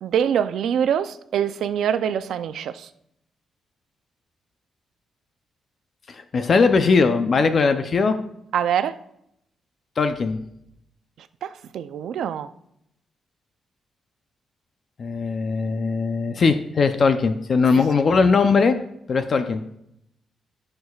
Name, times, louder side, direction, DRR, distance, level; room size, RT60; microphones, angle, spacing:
voice 1, 0.0-2.9 8.5-9.0 11.2-12.5, right 8 dB, 80° right, 0.4 m, -24 dB
voice 2, 6.1-8.2 10.0-10.4 15.0-18.8 19.1-19.6, left 4 dB, 40° left, 0.5 m, -20 dB
15.0 x 6.6 x 2.4 m
cardioid pair, 140°, 0 cm